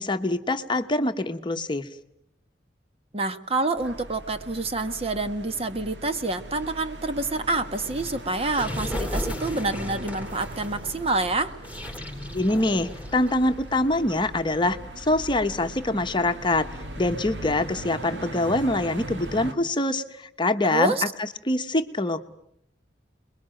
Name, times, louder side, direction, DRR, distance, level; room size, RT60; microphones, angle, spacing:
voice 1, 0.0-1.9 12.3-16.7 17.0-22.2, left 2 dB, 25° left, 8 dB, 1.1 m, -25 dB
voice 2, 3.1-11.5 20.7-21.0, right 2 dB, 35° right, 9 dB, 1.3 m, -27 dB
sound 1, 3.8-19.5, right 1 dB, 75° right, 2.5 m, -39 dB
sound 2, 7.7-13.6, left 1 dB, 10° right, 4.4 m, -36 dB
28.5 x 21.5 x 7.7 m, 0.73 s
head